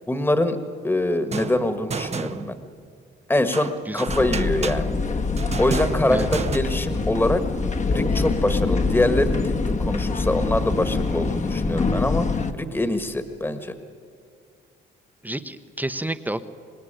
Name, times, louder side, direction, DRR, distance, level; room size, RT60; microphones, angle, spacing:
voice 1, 0.1-0.6 0.8-2.6 3.3-4.9 5.6-7.4 7.9-12.3 12.5-13.7, left 1 dB, 10° left, 9 dB, 1.6 m, -24 dB
sound 1, 1.3-2.8 3.5-6.6, right 5 dB, 35° right, 0.9 m, -31 dB
sound 2, 4.1-12.5, left 3 dB, 35° left, 1.5 m, -24 dB
voice 2, 15.2-16.4, right 1 dB, 10° right, 10 dB, 1.0 m, -29 dB
25.5 x 20.0 x 9.0 m, 2.2 s
cardioid pair, 90°, 20 cm